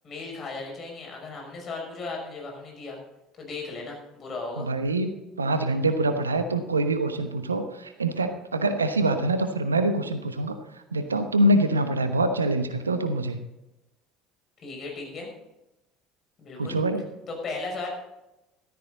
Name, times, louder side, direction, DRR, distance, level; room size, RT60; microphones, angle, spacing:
voice 1, 0.0-3.0 3.4-4.7 14.6-15.3 16.4-16.8 17.3-17.9, left 3 dB, 40° left, 0 dB, 5.7 m, -36 dB
voice 2, 4.6-10.6 10.9-13.4 16.6-17.0, right 2 dB, 85° right, 9 dB, 0.9 m, -25 dB
14.5 x 13.0 x 4.0 m, 0.96 s
figure-of-eight pair, 60°, 0 cm